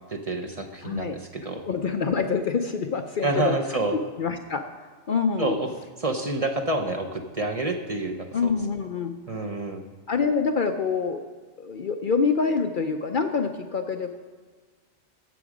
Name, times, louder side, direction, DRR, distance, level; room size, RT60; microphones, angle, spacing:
voice 1, 0.1-1.6 3.2-4.0 5.4-5.7 6.0-8.5 9.3-9.8, right 2 dB, 35° right, 3 dB, 0.8 m, -28 dB
voice 2, 0.8-1.2 1.7-3.5 4.2-4.6 5.1-5.6 8.3-9.5 10.1-11.2 11.6-14.2, left 5 dB, 55° left, 6 dB, 0.7 m, -26 dB
14.0 x 7.2 x 5.0 m, 1.5 s
omnidirectional pair, 1.2 m